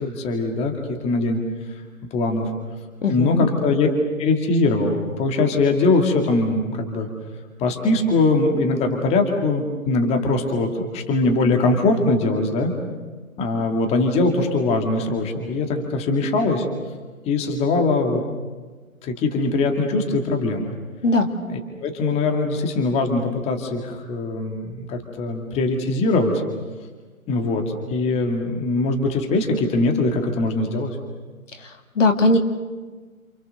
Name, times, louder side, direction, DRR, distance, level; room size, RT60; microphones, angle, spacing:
voice 1, 0.0-1.4 2.1-2.5 3.1-3.9 4.2-7.1 7.6-12.7 13.4-16.7 17.3-18.2 19.0-20.7 21.5-26.4 27.3-27.6 27.9-31.0, left 3 dB, 15° left, 3 dB, 2.3 m, -21 dB
voice 2, 3.0-3.5 21.0-21.3 32.0-32.4, left 2 dB, 60° left, 5 dB, 2.9 m, -18 dB
28.5 x 28.0 x 6.7 m, 1.3 s
figure-of-eight pair, 140°, 43 cm